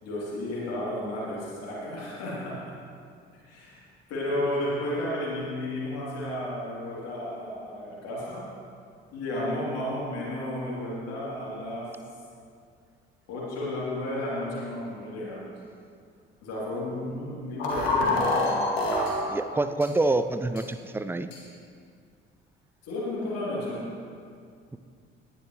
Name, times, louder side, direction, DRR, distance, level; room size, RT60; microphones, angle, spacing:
voice 1, 0.0-2.8 3.4-8.5 9.1-12.0 13.3-15.5 16.4-18.6 22.8-23.9, left 1 dB, 55° left, -7 dB, 3.1 m, -33 dB
sound 1, 17.6-19.1 19.8-19.9 20.6-20.7 21.3-21.4, left 2 dB, 75° left, 2.1 m, -25 dB
voice 2, 19.3-21.3, right 2 dB, 5° right, 11 dB, 0.5 m, -26 dB
18.5 x 10.5 x 3.1 m, 2.3 s
figure-of-eight pair, 50°, 31 cm